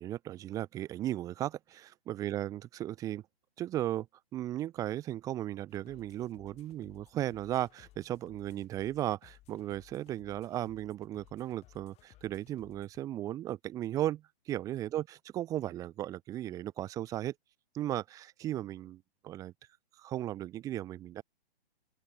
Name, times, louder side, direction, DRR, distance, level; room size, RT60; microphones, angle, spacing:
voice 1, 0.0-3.2 3.6-4.1 4.3-17.3 17.7-19.5 20.0-21.2, right 13 dB, 10° right, 0.7 m, -36 dB
sound 1, 5.7-13.0, left 16 dB, 20° left, 3.1 m, -61 dB
open air
hypercardioid pair, 155°, 31 cm